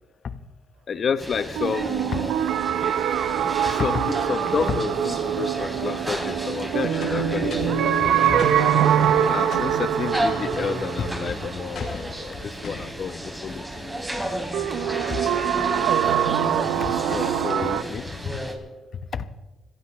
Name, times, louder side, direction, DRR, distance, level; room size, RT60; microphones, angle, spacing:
voice 1, 0.9-2.3 3.7-8.4 9.3-13.7 16.8-18.3 19.1-19.3, left 6 dB, 50° left, 12 dB, 0.9 m, -30 dB
sound 1, 1.2-18.5, right 1 dB, 10° right, 3.4 m, -33 dB
sound 2, 1.6-12.4 14.5-17.8, right 9 dB, 85° right, 0.8 m, -24 dB
sound 3, 7.0-7.8 8.4-8.6 9.0-9.8 10.1-10.4 11.7-12.1 12.6-12.9, left 4 dB, 65° left, 4.1 m, -37 dB
25.5 x 15.5 x 3.2 m, 1.1 s
cardioid pair, 90°, 0 cm